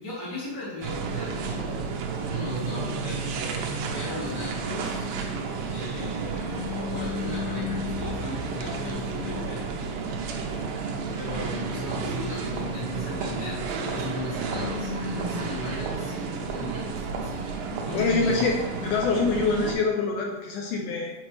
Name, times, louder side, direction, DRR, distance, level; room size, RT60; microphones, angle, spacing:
voice 1, 0.0-1.7 2.2-3.4 3.9-5.1 5.7-9.9 11.1-18.5, left 1 dB, 20° right, -9 dB, 0.7 m, -37 dB
sound 1, 0.8-19.8, right 3 dB, 80° right, 2.4 m, -31 dB
voice 2, 17.9-18.5 18.8-21.1, left 4 dB, 80° left, 1 dB, 2.0 m, -25 dB
8.3 x 4.8 x 3.1 m, 1.1 s
omnidirectional pair, 4.1 m